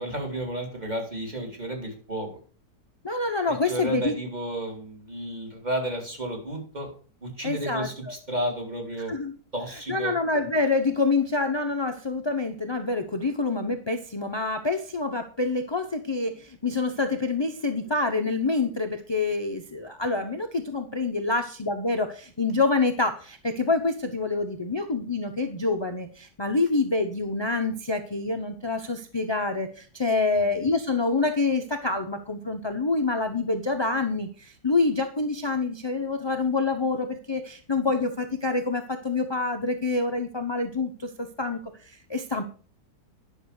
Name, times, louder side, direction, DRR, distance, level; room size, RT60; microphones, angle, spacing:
voice 1, 0.0-2.3 3.5-6.9 7.2-9.1 9.5-10.1 30.3-30.5, right 1 dB, 25° right, 1 dB, 2.9 m, -32 dB
voice 2, 3.0-4.1 7.4-7.9 9.1-9.3 9.9-41.6 41.8-42.4, left 3 dB, 30° left, 6 dB, 0.5 m, -27 dB
10.5 x 6.2 x 6.5 m, 0.41 s
omnidirectional pair, 1.8 m